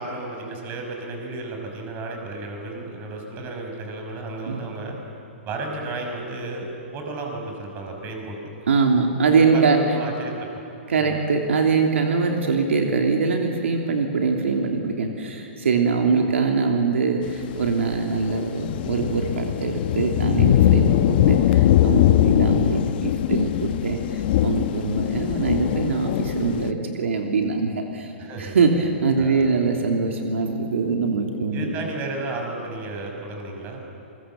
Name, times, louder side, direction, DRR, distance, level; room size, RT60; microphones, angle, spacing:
voice 1, 0.0-5.0 5.4-6.7 6.9-8.4 9.4-10.5 11.0-11.2 16.1-16.3 28.2-28.6 29.2-29.5 31.5-33.8, right 2 dB, 30° right, 2 dB, 6.1 m, -33 dB
voice 2, 8.7-9.8 10.9-28.1 28.4-31.7, right 4 dB, 85° right, 2 dB, 2.9 m, -23 dB
sound 1, 17.6-18.0 18.2-26.7, left 11 dB, 50° left, 1.0 m, -21 dB
28.0 x 23.0 x 7.6 m, 2.9 s
hypercardioid pair, 140°, 7 cm